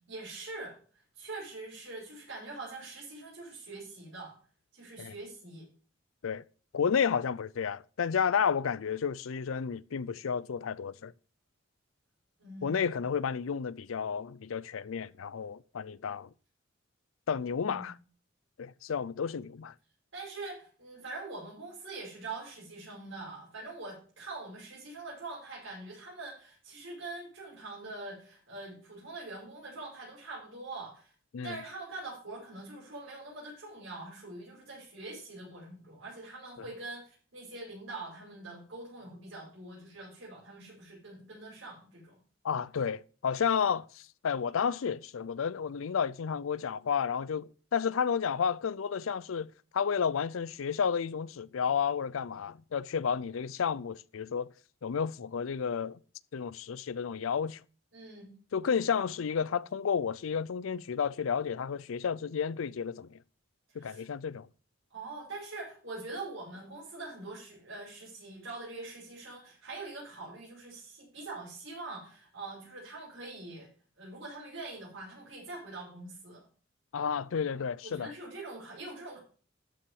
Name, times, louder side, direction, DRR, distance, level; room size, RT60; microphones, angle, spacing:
voice 1, 0.1-4.3 4.7-5.7 12.4-12.9 17.5-17.9 20.1-31.1 31.4-42.2 57.9-58.3 63.7-64.1 64.9-73.7 74.0-76.5 77.8-79.2, right 2 dB, 70° right, 5.6 m, -44 dB
voice 2, 6.7-11.1 12.6-16.3 17.3-17.9 18.6-19.7 31.3-31.6 42.4-54.5 54.8-56.0 56.3-57.6 58.5-63.2 63.7-64.5 76.9-78.1, left 6 dB, 90° left, 0.5 m, -31 dB
13.0 x 6.0 x 4.8 m
head